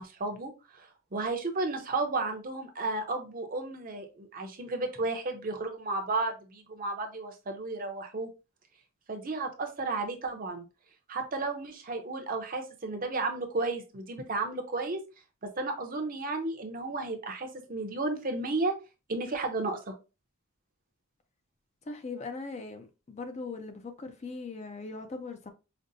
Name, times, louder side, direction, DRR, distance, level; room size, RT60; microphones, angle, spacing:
voice 1, 0.0-8.3 9.1-10.7 11.1-15.0 15.4-18.7 19.1-19.9, right 3 dB, 40° right, 0.6 m, -33 dB
voice 2, 21.9-25.5, left 3 dB, 30° left, 0.4 m, -40 dB
5.1 x 2.1 x 2.6 m
head